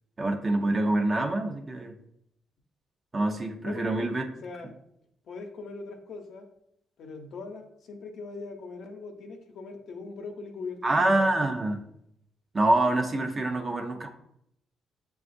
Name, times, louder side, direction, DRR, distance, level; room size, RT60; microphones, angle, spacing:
voice 1, 0.2-1.9 3.1-4.2 10.8-11.8 12.5-14.1, right 2 dB, 30° right, 5 dB, 0.6 m, -26 dB
voice 2, 3.6-4.1 4.4-4.7 5.3-6.5 7.0-10.8 11.1-11.3, left 4 dB, 70° left, 4 dB, 0.7 m, -40 dB
7.0 x 2.4 x 2.5 m, 0.75 s
cardioid pair, 90°, 0 cm